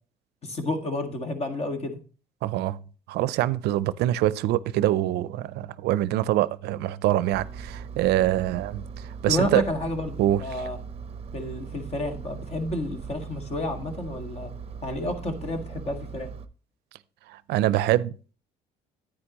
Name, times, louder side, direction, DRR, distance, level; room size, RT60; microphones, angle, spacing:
voice 1, 0.4-2.0 9.3-10.8 11.3-14.5 14.8-16.3, left 1 dB, 40° left, 1.7 m, -30 dB
voice 2, 2.4-2.8 3.1-8.8 9.2-9.6 10.2-10.4 17.3-18.3, right 14 dB, 75° right, 0.5 m, -24 dB
Engine, 7.3-16.5, right 6 dB, 35° right, 0.6 m, -39 dB
9.7 x 9.0 x 2.9 m
cardioid pair, 110°, 17 cm